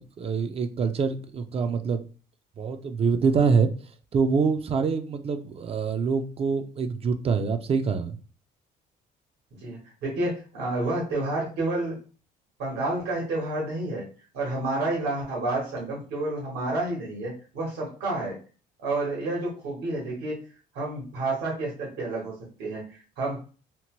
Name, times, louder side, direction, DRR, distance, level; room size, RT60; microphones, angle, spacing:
voice 1, 0.0-2.0 2.6-3.7 4.1-8.2, right 5 dB, 35° right, 0.4 m, -25 dB
voice 2, 9.6-12.0 12.6-14.1 14.3-18.4 18.8-20.4 20.7-23.4, right 2 dB, 85° right, 1.4 m, -30 dB
2.8 x 2.1 x 3.0 m
cardioid pair, 110°, 17 cm